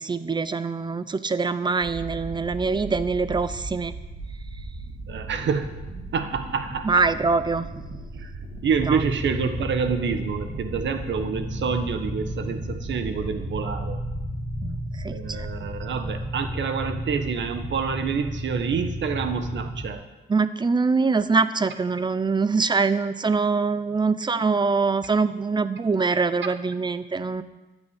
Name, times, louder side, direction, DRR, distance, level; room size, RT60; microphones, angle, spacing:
voice 1, 0.0-3.9 6.8-7.7 8.9-9.0 14.6-15.5 20.3-27.4, right 4 dB, 25° right, 12 dB, 0.7 m, -24 dB
sound 1, 1.8-19.6, right 2 dB, 60° right, 3.3 m, -39 dB
voice 2, 5.1-5.8 6.1-7.1 8.2-8.3 8.6-14.0 15.1-20.0, right 6 dB, 90° right, 8 dB, 1.4 m, -27 dB
sound 2, 8.7-19.9, equal, 5° right, 1.6 m, -33 dB
12.5 x 9.1 x 8.2 m, 1.1 s
wide cardioid pair, 155°, 18 cm